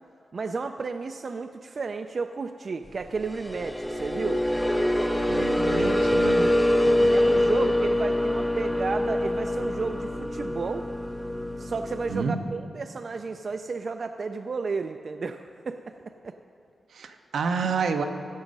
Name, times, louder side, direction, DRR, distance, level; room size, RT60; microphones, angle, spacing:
voice 1, 0.3-4.4 7.1-10.9 11.6-16.4, right 4 dB, 50° right, 7 dB, 0.3 m, -32 dB
sound 1, 3.2-12.2, left 1 dB, 5° left, 0.6 m, -25 dB
voice 2, 5.3-6.5 6.8-7.1 12.1-12.4 16.9-18.0, right 5 dB, 85° right, 6 dB, 0.7 m, -29 dB
Trumpet, 5.7-10.1, left 1 dB, 35° left, 1.3 m, -49 dB
16.0 x 6.4 x 5.3 m, 2.6 s
cardioid pair, 85°, 0 cm